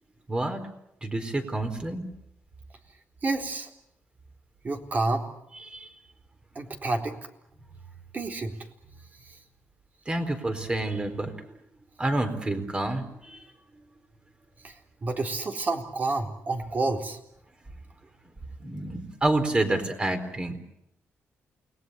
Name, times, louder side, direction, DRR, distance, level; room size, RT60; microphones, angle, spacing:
voice 1, 0.3-0.7 1.0-2.0 5.7-5.9 10.1-11.6 12.0-13.4 18.6-20.6, right 2 dB, 20° right, 7 dB, 4.2 m, -28 dB
voice 2, 3.2-3.7 4.6-5.2 6.6-7.2 8.1-8.5 14.6-14.7 15.0-17.2, right 3 dB, 40° right, 3 dB, 3.9 m, -29 dB
29.0 x 20.5 x 8.3 m, 0.80 s
cardioid pair, 110°, 5 cm